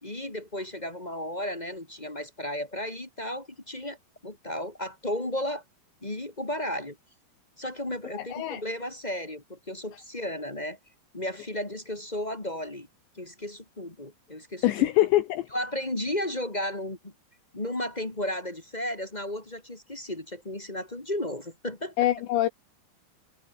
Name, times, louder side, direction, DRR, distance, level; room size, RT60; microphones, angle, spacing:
voice 1, 0.0-4.0 4.2-5.6 6.0-7.0 7.6-10.8 11.1-12.9 13.1-14.9 15.5-17.1 17.5-21.9, left 1 dB, 25° left, 0.9 m, -34 dB
voice 2, 8.1-8.6 14.6-15.5 22.0-22.5, left 14 dB, 75° left, 2.9 m, -24 dB
omnidirectional pair, 6.0 m